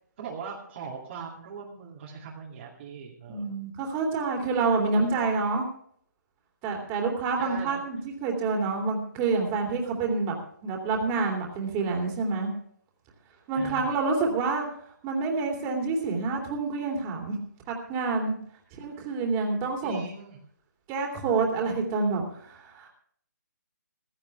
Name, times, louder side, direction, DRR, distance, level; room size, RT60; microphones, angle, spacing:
voice 1, 0.2-3.5 4.9-5.2 7.4-7.8 13.5-13.9 19.8-20.4, right 4 dB, 40° right, -2 dB, 2.5 m, -40 dB
voice 2, 3.3-5.7 6.6-10.3 10.6-12.5 13.5-14.7 15.0-17.4 17.7-18.4 18.8-20.0 20.9-22.9, right 4 dB, 25° right, 1 dB, 3.0 m, -27 dB
15.5 x 14.5 x 3.4 m, 0.63 s
figure-of-eight pair, 140°, 10 cm